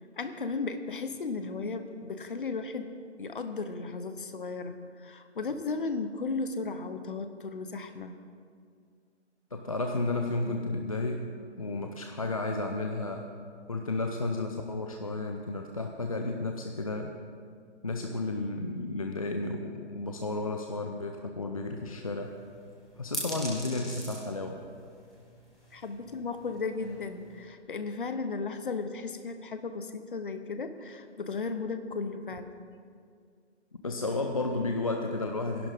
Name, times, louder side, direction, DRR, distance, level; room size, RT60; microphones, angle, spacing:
voice 1, 0.2-2.9 3.2-8.1 10.5-10.6 25.7-32.5, left 4 dB, 45° left, 9 dB, 0.9 m, -35 dB
voice 2, 9.5-13.3 13.7-17.2 17.8-22.4 23.0-24.6 33.8-35.7, left 2 dB, 30° left, 3 dB, 0.5 m, -32 dB
sound 1, 22.2-27.4, equal, ahead, 1.6 m, -43 dB
19.0 x 11.0 x 3.6 m, 2.2 s
figure-of-eight pair, 150°, 35 cm